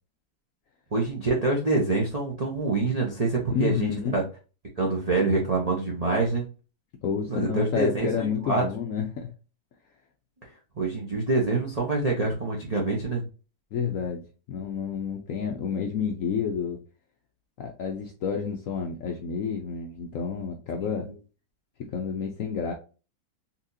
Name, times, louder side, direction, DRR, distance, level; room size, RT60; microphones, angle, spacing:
voice 1, 0.9-4.2 4.8-6.4 7.3-8.6 10.8-13.2 21.0-21.1, right 3 dB, 80° right, -3 dB, 0.3 m, -26 dB
voice 2, 3.5-4.2 7.0-9.3 13.7-16.8 17.6-21.1 21.8-22.7, left 7 dB, 90° left, 2 dB, 0.7 m, -30 dB
4.1 x 2.9 x 2.6 m, 0.34 s
omnidirectional pair, 2.1 m